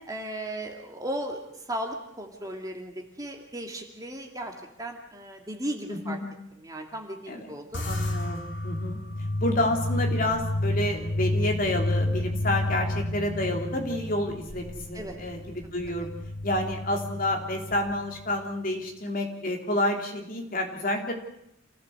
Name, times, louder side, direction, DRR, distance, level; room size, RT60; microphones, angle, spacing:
voice 1, 0.0-6.2 6.6-7.8 14.9-15.2, right 1 dB, 15° right, 2 dB, 2.4 m, -36 dB
voice 2, 5.9-6.2 7.3-7.5 7.8-9.0 9.4-16.1 16.4-21.1, left 1 dB, 40° left, 2 dB, 3.4 m, -29 dB
sound 1, 7.7-18.3, left 1 dB, 60° left, 4.3 m, -31 dB
27.5 x 16.0 x 8.0 m, 0.79 s
head